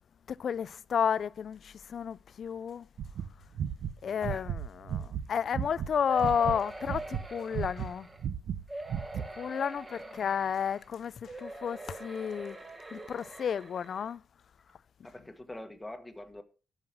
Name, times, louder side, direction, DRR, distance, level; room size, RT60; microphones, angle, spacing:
voice 1, 0.3-2.9 4.0-8.1 9.4-12.6 12.9-14.2, left 7 dB, 50° left, 0.4 m, -32 dB
sound 1, 3.0-5.9 6.2-8.6 8.9-9.3, right 8 dB, 65° right, 0.8 m, -34 dB
sound 2, 6.1-8.2 8.7-10.9 11.2-14.1 14.7-14.8 15.1-15.2, right 2 dB, 15° right, 1.7 m, -44 dB
voice 2, 15.0-16.4, left 1 dB, 10° left, 1.4 m, -44 dB
12.5 x 5.8 x 6.0 m
cardioid pair, 130°, 0 cm